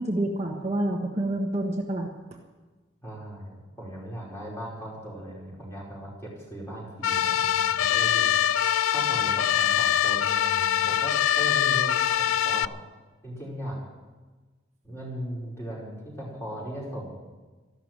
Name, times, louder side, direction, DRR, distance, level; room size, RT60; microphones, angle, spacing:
voice 1, 0.0-2.4, right 1 dB, 30° right, 0 dB, 1.3 m, -28 dB
voice 2, 3.0-8.3 8.9-12.7 13.2-13.8 14.8-17.1, equal, 15° left, -5 dB, 4.7 m, -38 dB
sound 1, 7.0-12.6, left 10 dB, 80° left, 0.4 m, -23 dB
14.0 x 12.0 x 7.4 m, 1.3 s
head